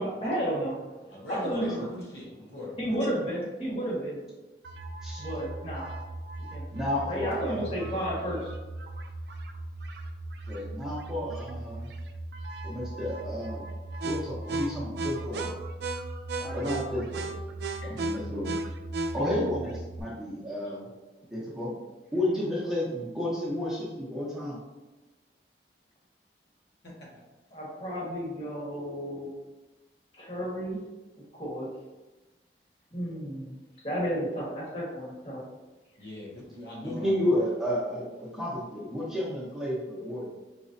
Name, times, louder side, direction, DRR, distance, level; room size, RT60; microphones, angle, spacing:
voice 1, 0.0-1.9 2.8-4.2 5.2-5.9 6.5-6.6 7.1-8.5 16.4-16.7 17.8-18.0 20.6-20.7 27.5-29.3 30.1-30.8 31.4-31.7 32.9-33.5 33.8-35.4, equal, 35° left, -6 dB, 1.3 m, -32 dB
voice 2, 1.1-3.1 26.8-27.2 36.0-37.3, left 1 dB, 85° left, -5 dB, 1.4 m, -40 dB
sound 1, 4.6-20.0, right 2 dB, 70° right, 0.4 m, -36 dB
voice 3, 6.7-7.8 10.5-11.9 12.6-13.7 14.0-15.5 16.5-17.3 17.8-18.6 19.1-20.8 21.3-21.7 22.1-24.6 36.8-40.3, left 1 dB, ahead, -7 dB, 0.8 m, -31 dB
5.0 x 3.0 x 2.6 m, 1.1 s
head